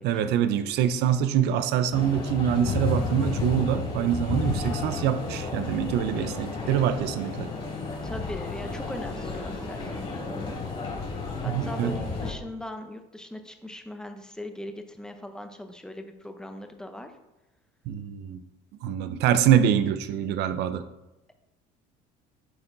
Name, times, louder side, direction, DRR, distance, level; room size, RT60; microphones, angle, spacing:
voice 1, 0.0-7.5 11.4-12.0 17.9-18.4 18.8-20.8, right 9 dB, 70° right, 11 dB, 0.6 m, -25 dB
sound 1, 1.9-12.3, left 3 dB, 35° left, 2.8 m, -32 dB
voice 2, 8.0-10.6 11.4-17.1, left 1 dB, 5° left, 6 dB, 0.8 m, -40 dB
11.0 x 4.3 x 3.9 m, 0.96 s
cardioid pair, 120°, 18 cm